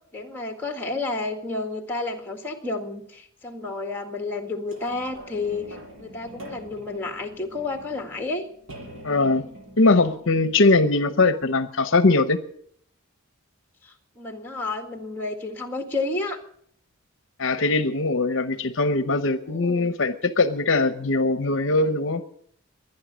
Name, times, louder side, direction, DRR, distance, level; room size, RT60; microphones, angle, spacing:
voice 1, 0.1-8.5 13.8-16.4 19.5-19.9, left 3 dB, 10° left, 4 dB, 1.8 m, -31 dB
sound 1, 4.7-11.4 12.1-12.2, equal, 60° right, 6.4 m, -45 dB
voice 2, 9.0-9.5 9.8-12.4 17.4-22.2, left 3 dB, 60° left, 11 dB, 0.8 m, -21 dB
23.0 x 9.8 x 6.2 m, 0.64 s
head